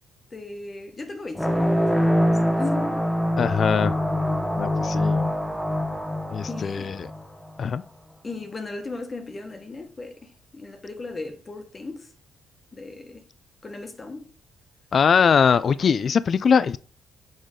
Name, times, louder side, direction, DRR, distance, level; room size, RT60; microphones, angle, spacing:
voice 1, 0.3-3.0 6.4-7.0 8.2-12.1 12.7-13.2 13.6-14.3, left 3 dB, 30° left, 1.1 m, -36 dB
sound 1, 1.3-7.5, equal, 5° left, 0.8 m, -24 dB
voice 2, 3.4-4.0 4.6-5.3 6.3-7.1 7.6-7.8 14.9-16.8, left 6 dB, 50° left, 0.3 m, -21 dB
6.5 x 4.9 x 3.7 m
cardioid pair, 90°, 0 cm